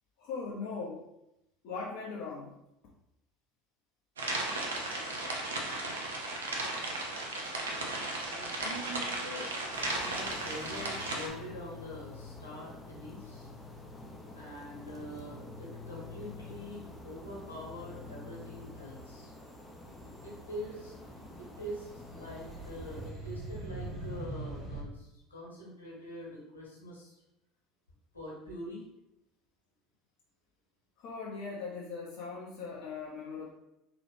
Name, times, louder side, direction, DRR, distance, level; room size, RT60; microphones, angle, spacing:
voice 1, 0.2-1.0 1.6-2.6 7.4-7.5 31.0-33.5, left 4 dB, 60° left, -4 dB, 0.7 m, -39 dB
sound 1, 4.2-11.3, right 2 dB, 80° right, 0.6 m, -35 dB
voice 2, 8.3-9.5 9.9-13.5 14.3-19.3 20.2-20.9 21.4-27.1 28.1-28.8, equal, 90° left, -4 dB, 1.3 m, -44 dB
sound 2, 9.7-23.1, left 3 dB, 15° left, 0.8 m, -48 dB
sound 3, 12.1-12.2 12.5-13.1 13.4-24.8, right 2 dB, 45° right, 1.3 m, -46 dB
4.0 x 2.9 x 3.4 m, 0.87 s
figure-of-eight pair, 70°, 0 cm